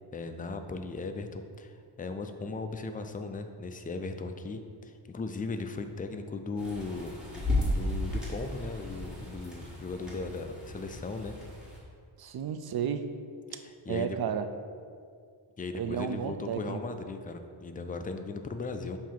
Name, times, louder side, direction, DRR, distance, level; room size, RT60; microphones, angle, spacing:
voice 1, 0.1-7.1 7.5-11.4 13.5-14.2 15.6-19.0, left 3 dB, 20° left, 7 dB, 0.3 m, -37 dB
sound 1, 6.6-11.8, left 1 dB, ahead, 1.6 m, -34 dB
voice 2, 12.2-13.2 13.5-13.6 13.9-14.5 15.7-16.8, right 8 dB, 50° right, 9 dB, 0.5 m, -32 dB
7.1 x 2.8 x 5.8 m, 2.2 s
wide cardioid pair, 100°, 48 cm